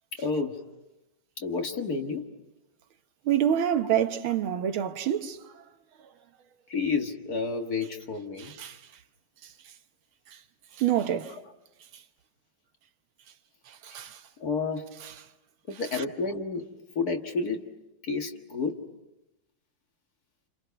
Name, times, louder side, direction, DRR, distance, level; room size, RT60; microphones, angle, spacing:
voice 1, 0.2-0.6 1.4-2.3 6.7-8.5 14.4-14.9 15.7-16.7 17.0-17.6 18.1-18.8, left 4 dB, 50° left, 2.1 m, -30 dB
voice 2, 3.3-5.4 8.4-8.8 10.8-11.4 13.8-14.2, right 10 dB, 85° right, 1.9 m, -26 dB
29.0 x 28.5 x 5.9 m
omnidirectional pair, 2.2 m